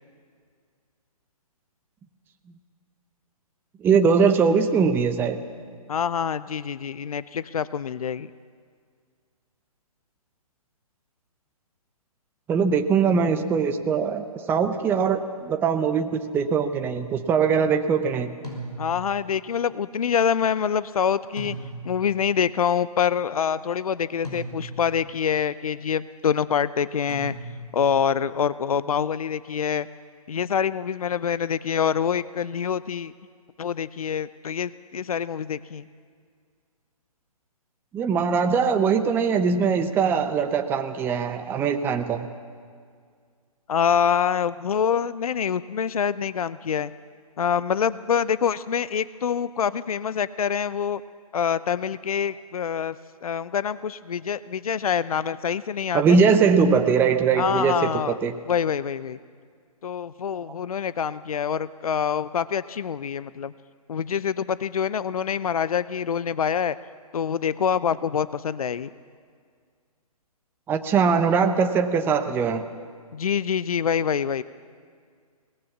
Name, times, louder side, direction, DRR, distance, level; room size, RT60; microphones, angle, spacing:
voice 1, 3.8-5.4 12.5-18.3 37.9-42.3 55.9-58.3 70.7-72.6, right 6 dB, 10° right, 6 dB, 0.7 m, -21 dB
voice 2, 5.9-8.3 18.8-21.6 21.8-27.3 27.7-29.9 30.3-33.1 33.6-35.9 43.7-46.9 47.4-51.0 51.3-53.0 53.2-56.2 57.3-58.2 58.5-59.2 59.8-63.5 63.9-66.8 67.1-68.9 73.1-74.4, left 7 dB, 70° left, 17 dB, 0.6 m, -25 dB
sound 1, 18.4-19.2 21.4-22.1 24.2-25.0 27.1-27.9, right 1 dB, 90° left, 6.0 m, -37 dB
22.5 x 19.0 x 7.2 m, 2.1 s
figure-of-eight pair, 135°, 19 cm